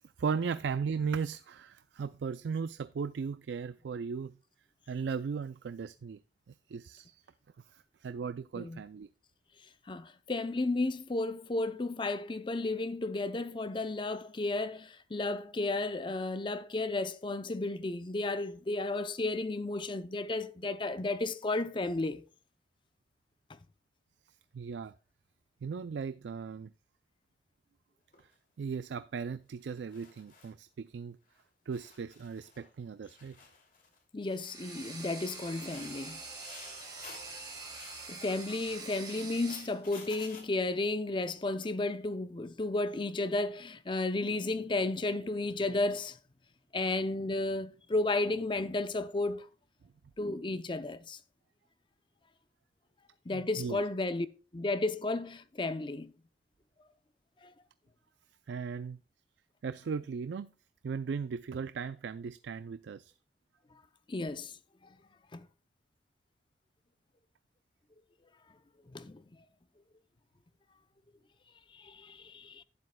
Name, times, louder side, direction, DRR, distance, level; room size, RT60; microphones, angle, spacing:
voice 1, 0.2-4.4 4.9-6.2 6.7-7.2 7.7-9.1 24.5-24.9 25.6-26.7 28.6-31.2 31.7-33.3 53.3-53.8 58.5-59.0 59.6-60.5 60.8-63.1, right 5 dB, 85° right, 0.4 m, -37 dB
voice 2, 9.9-22.2 34.1-36.2 38.1-46.1 46.7-49.5 50.2-51.2 53.3-54.3 54.5-56.1 64.1-64.5 65.3-65.5 68.9-69.2 71.8-72.6, left 2 dB, 30° left, 0.5 m, -33 dB
sound 1, 28.1-28.3 29.6-30.5 31.3-31.4 31.7-32.8 33.0-34.0 34.3-34.6 35.5-37.3 37.7-38.1 38.7-40.4, left 5 dB, 50° left, 2.5 m, -53 dB
sound 2, 34.2-39.8, right 3 dB, 25° right, 3.3 m, -45 dB
12.0 x 9.7 x 2.2 m
head